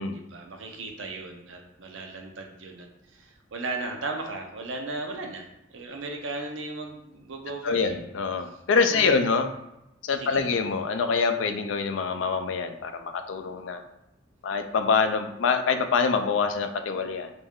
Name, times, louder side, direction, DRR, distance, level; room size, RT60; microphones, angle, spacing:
voice 1, 0.1-2.9 3.1-8.0 8.9-9.3 10.1-10.7, right 2 dB, 75° right, 2 dB, 0.6 m, -36 dB
voice 2, 7.6-9.5 10.0-13.8 14.4-17.3, left 5 dB, 75° left, 7 dB, 0.4 m, -25 dB
3.2 x 2.5 x 3.5 m, 0.89 s
head